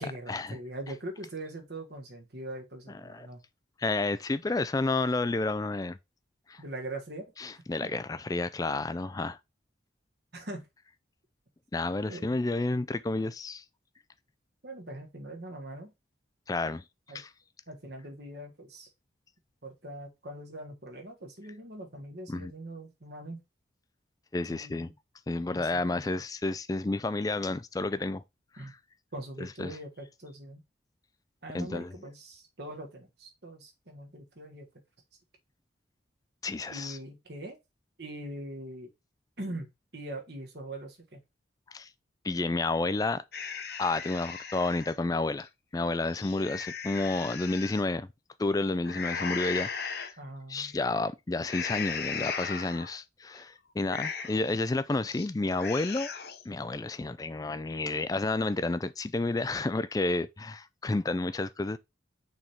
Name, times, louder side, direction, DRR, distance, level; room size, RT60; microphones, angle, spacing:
voice 1, 0.0-3.4 6.6-7.9 10.3-10.7 12.1-12.4 14.6-15.9 17.1-17.2 17.7-18.9 19.6-23.4 24.5-24.9 25.5-26.2 28.6-28.7 29.1-30.6 31.4-34.7 36.7-37.6 38.0-38.9 39.4-39.7 39.9-41.2 50.2-50.7, right 1 dB, 55° right, 1.6 m, -42 dB
voice 2, 3.8-6.0 6.5-6.6 7.4-9.4 11.7-13.6 16.5-16.8 17.1-17.3 22.3-22.5 24.3-24.9 25.3-28.2 29.6-29.8 31.5-31.9 36.4-37.0 41.7-41.9 42.2-43.2 43.8-48.1 48.4-50.1 50.5-56.1 56.5-61.8, left 2 dB, 20° left, 0.3 m, -30 dB
sound 1, 43.3-44.9 45.4-45.5 46.0-47.8 48.8-50.1 50.6-50.9 51.4-53.0 53.3-53.4 53.8-54.5 54.9-55.3 55.5-56.4, left 6 dB, 55° left, 0.7 m, -37 dB
6.3 x 3.6 x 4.3 m
head